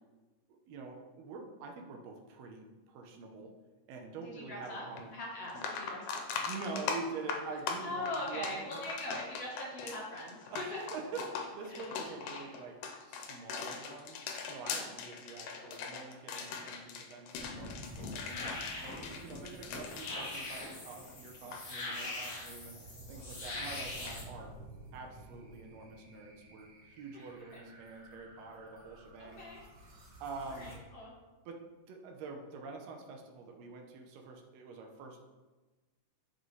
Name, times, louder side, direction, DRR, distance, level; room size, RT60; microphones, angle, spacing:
voice 1, 0.7-3.5 3.9-5.1 6.5-8.8 10.5-12.7 13.1-14.2 14.5-18.5 18.8-24.5 24.9-29.4 30.2-30.8 31.5-31.6 31.9-35.2, right 4 dB, 70° right, 2 dB, 1.8 m, -46 dB
voice 2, 4.2-4.9 5.1-6.5 7.8-10.8 11.7-12.0 12.3-12.5 14.7-14.9 16.5-16.7 22.0-22.1 23.5-23.8 27.1-27.2 29.2-29.6 30.4-31.1, left 1 dB, 60° left, -4 dB, 2.0 m, -42 dB
sound 1, 5.0-5.1 5.5-21.1 21.3-21.6 24.1-24.2, left 5 dB, 90° left, 2.3 m, -41 dB
sound 2, 17.4-24.2, left 2 dB, 40° left, 1.3 m, -42 dB
sound 3, 17.8-30.7, right 1 dB, 85° right, 0.7 m, -54 dB
7.8 x 5.7 x 3.1 m, 1.2 s
omnidirectional pair, 3.6 m